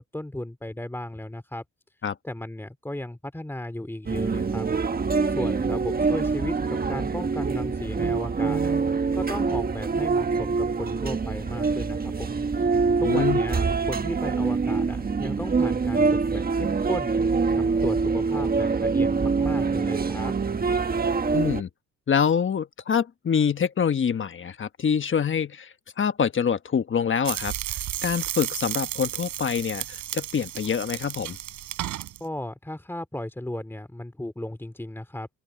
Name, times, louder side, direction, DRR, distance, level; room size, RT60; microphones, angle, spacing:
voice 1, 0.0-1.6 2.2-4.7 5.3-8.7 9.1-12.4 13.0-17.2 17.5-20.3 32.2-35.3, left 1 dB, 10° left, 2.8 m, -35 dB
sound 1, 4.1-21.6, right 4 dB, 30° right, 1.5 m, -25 dB
voice 2, 12.8-13.4 21.3-21.7 22.1-27.5 28.0-31.4, left 7 dB, 40° left, 1.3 m, -25 dB
sound 2, 27.2-32.2, right 13 dB, 80° right, 4.9 m, -33 dB
open air
cardioid pair, 90°, 30 cm